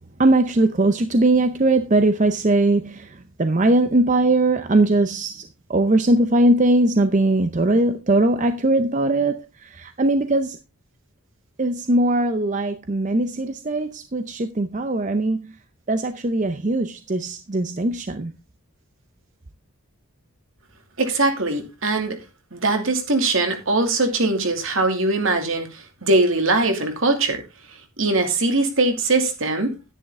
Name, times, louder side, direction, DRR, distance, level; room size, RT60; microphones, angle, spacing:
voice 1, 0.2-5.4 5.7-10.6 11.6-15.5 15.9-18.3, right 2 dB, 35° right, 0.6 m, -20 dB
voice 2, 21.0-22.2 22.5-27.4 28.0-29.7, right 2 dB, 65° right, 2.5 m, -21 dB
10.5 x 9.9 x 3.6 m
head